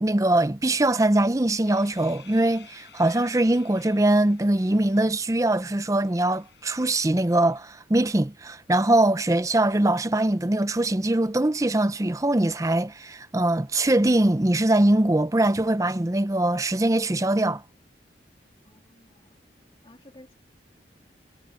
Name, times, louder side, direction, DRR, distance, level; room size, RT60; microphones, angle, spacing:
voice 1, 0.0-17.6, right 1 dB, 20° right, 0.6 m, -22 dB
sound 1, 1.6-7.6, left 8 dB, 70° left, 6.5 m, -54 dB
voice 2, 18.6-19.4 19.8-20.3, left 1 dB, 30° left, 3.0 m, -53 dB
head